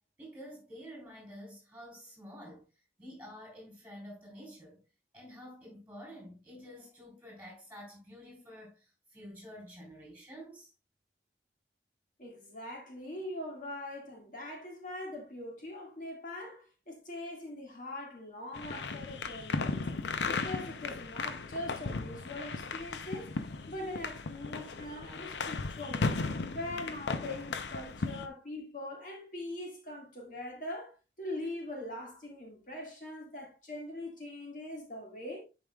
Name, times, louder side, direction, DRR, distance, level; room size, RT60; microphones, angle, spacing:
voice 1, 0.2-2.7 3.0-4.8 5.1-10.7, equal, 10° right, 3.7 m, -49 dB
voice 2, 12.2-19.9 20.2-23.3 23.7-26.2 26.5-35.4, left 1 dB, 50° left, 1.9 m, -42 dB
sound 1, 18.5-28.3, left 4 dB, 85° left, 0.6 m, -36 dB
10.5 x 4.9 x 2.3 m
head